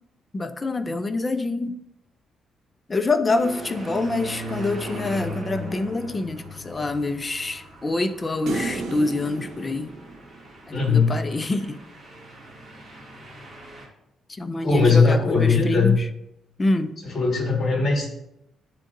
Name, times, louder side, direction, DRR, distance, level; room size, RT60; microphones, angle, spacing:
voice 1, 0.3-1.7 2.9-9.9 10.7-11.8 14.4-16.1 16.6-17.0, left 2 dB, 25° left, 9 dB, 0.4 m, -26 dB
sound 1, 3.3-13.9, right 1 dB, 20° right, 2.1 m, -38 dB
sound 2, 8.5-10.9, right 2 dB, 75° right, 1.2 m, -33 dB
voice 2, 10.7-11.2 14.6-15.9 17.0-18.1, left 4 dB, 45° left, 0 dB, 1.7 m, -19 dB
10.0 x 3.7 x 2.6 m, 0.82 s
cardioid pair, 90°, 0 cm